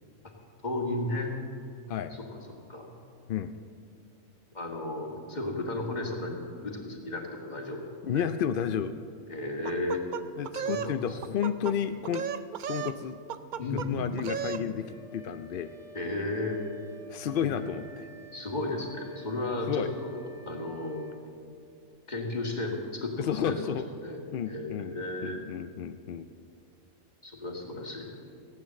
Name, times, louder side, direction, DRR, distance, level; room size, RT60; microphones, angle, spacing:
voice 1, 0.6-1.3 2.1-2.2 2.7-2.9 4.5-8.2 9.3-10.0 10.6-11.2 13.6-14.7 15.9-16.6 17.4-17.5 18.3-21.1 22.1-23.7 24.0-25.4 27.2-28.2, left 2 dB, 35° left, 0 dB, 1.9 m, -34 dB
voice 2, 8.0-9.0 10.4-12.3 12.7-13.2 13.7-15.7 17.1-18.1 19.7-19.9 23.2-23.9 24.3-24.9 25.2-26.3, left 8 dB, 65° left, 9 dB, 0.5 m, -31 dB
sound 1, 9.6-10.9 11.2-11.7 12.0-13.0 13.3-13.9 14.2-14.6, right 8 dB, 65° right, 0.4 m, -34 dB
Wind instrument woodwind instrument, 14.7-21.3, right 2 dB, 30° right, 1.7 m, -51 dB
16.0 x 8.9 x 7.5 m, 2.4 s
omnidirectional pair, 1.4 m